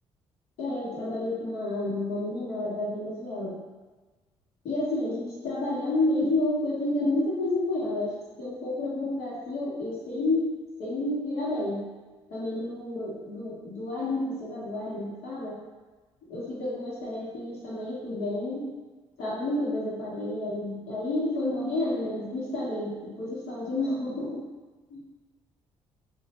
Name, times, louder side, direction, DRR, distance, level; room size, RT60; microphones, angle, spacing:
voice 1, 0.6-3.6 4.6-10.5 10.8-11.8 12.3-15.6 16.3-18.7 19.2-24.4 24.9-25.0, left 2 dB, 85° left, -7 dB, 1.2 m, -30 dB
2.9 x 2.5 x 4.3 m, 1.3 s
cardioid pair, 160°, 10 cm